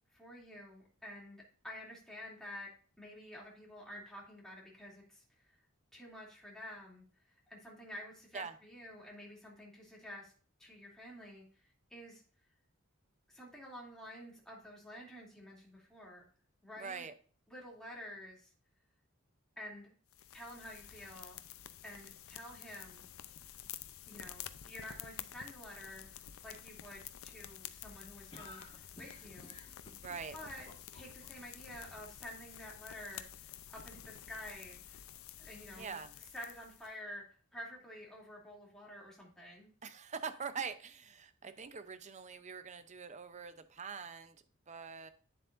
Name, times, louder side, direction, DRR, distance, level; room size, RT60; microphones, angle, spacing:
voice 1, 0.1-2.7 3.0-5.6 5.9-10.3 10.6-12.2 13.3-16.2 16.6-17.1 17.5-18.5 19.6-19.9 20.3-21.4 21.8-23.0 24.1-26.1 26.4-29.6 30.3-30.7 30.9-35.0 35.4-36.0 36.3-39.7, left 1 dB, 5° left, -4 dB, 2.7 m, -50 dB
voice 2, 16.8-17.1 30.0-30.4 35.8-36.1 39.8-44.4 44.7-45.1, right 5 dB, 35° right, 11 dB, 0.7 m, -44 dB
sound 1, 20.1-36.9, left 11 dB, 85° left, 0.5 m, -50 dB
sound 2, 28.3-31.3, left 2 dB, 25° left, 1.6 m, -54 dB
9.3 x 7.4 x 2.6 m, 0.41 s
head